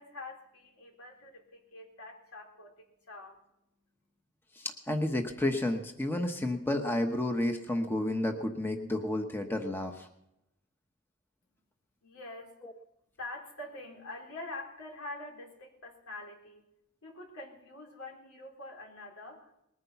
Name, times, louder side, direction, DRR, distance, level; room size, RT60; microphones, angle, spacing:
voice 1, 0.0-3.4 12.0-12.5 13.2-16.6 17.0-19.6, left 2 dB, 85° left, 0 dB, 4.1 m, -45 dB
voice 2, 4.6-10.1 12.6-12.7, left 1 dB, 10° left, 4 dB, 0.9 m, -31 dB
20.5 x 9.7 x 5.8 m, 0.82 s
head